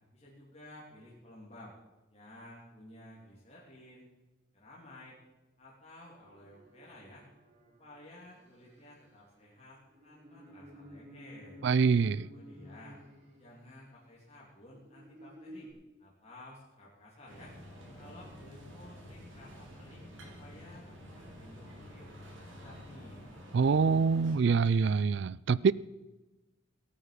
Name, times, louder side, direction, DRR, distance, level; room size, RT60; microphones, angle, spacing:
voice 1, 0.1-1.7 2.1-4.1 4.5-5.2 5.6-7.3 7.8-9.8 10.0-11.6 12.3-13.0 13.3-15.7 16.0-17.5 17.9-20.0 20.4-23.2, left 1 dB, 30° left, -5 dB, 3.1 m, -53 dB
sound 1, 6.2-14.1 14.7-15.7, equal, 35° right, 2.9 m, -53 dB
voice 2, 11.6-12.3 23.5-25.7, right 5 dB, 60° right, 21 dB, 0.4 m, -25 dB
sound 2, 17.3-24.4, equal, 75° right, 2.9 m, -49 dB
19.0 x 8.7 x 5.2 m, 1.1 s
head